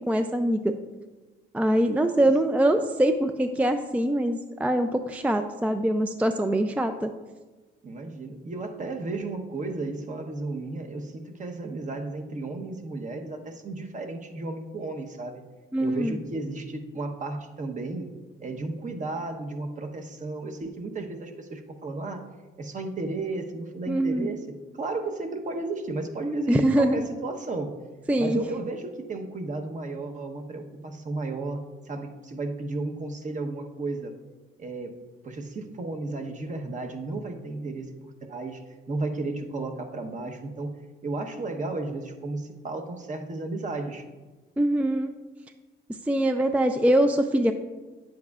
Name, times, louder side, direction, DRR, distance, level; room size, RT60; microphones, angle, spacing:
voice 1, 0.1-0.7 1.5-7.1 15.7-16.2 23.9-24.3 26.5-27.1 28.1-28.4 44.6-45.1 46.1-47.5, right 1 dB, 5° right, 7 dB, 0.4 m, -23 dB
voice 2, 7.8-15.4 15.8-18.1 18.4-22.2 22.6-24.4 24.8-27.8 28.2-34.1 34.6-34.9 35.2-37.9 38.2-38.6 38.9-40.7 41.0-44.0, right 2 dB, 40° right, 4 dB, 1.0 m, -33 dB
9.4 x 7.7 x 2.4 m, 1.2 s
cardioid pair, 90°, 20 cm